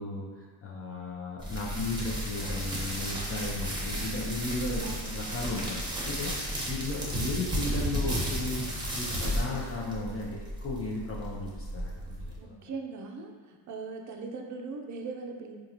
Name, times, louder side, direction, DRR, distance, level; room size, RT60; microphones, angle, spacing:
voice 1, 0.0-12.5, left 2 dB, 30° left, -3 dB, 0.6 m, -35 dB
sound 1, 1.4-12.4, equal, 10° right, 0.9 m, -33 dB
voice 2, 4.8-5.2 12.4-15.6, right 4 dB, 45° right, 2 dB, 0.5 m, -40 dB
3.7 x 2.5 x 2.9 m, 1.5 s
supercardioid pair, 75°, 43 cm